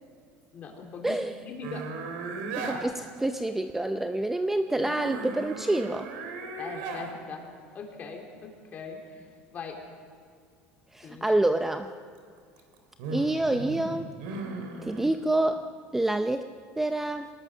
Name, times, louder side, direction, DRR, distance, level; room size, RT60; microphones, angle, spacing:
voice 1, 0.5-1.2 1.4-2.0 6.6-9.3 9.5-9.9 11.0-11.4 14.8-15.0, left 4 dB, 35° left, 1 dB, 3.6 m, -41 dB
sound 1, 1.6-2.8 4.8-7.1 12.4-15.1, right 3 dB, 85° right, 3.5 m, -36 dB
voice 2, 2.6-6.1 10.9-11.9 13.1-14.1 14.8-16.5 16.8-17.3, right 1 dB, 5° right, 8 dB, 0.5 m, -27 dB
24.0 x 19.5 x 6.3 m, 2.1 s
cardioid pair, 145°, 5 cm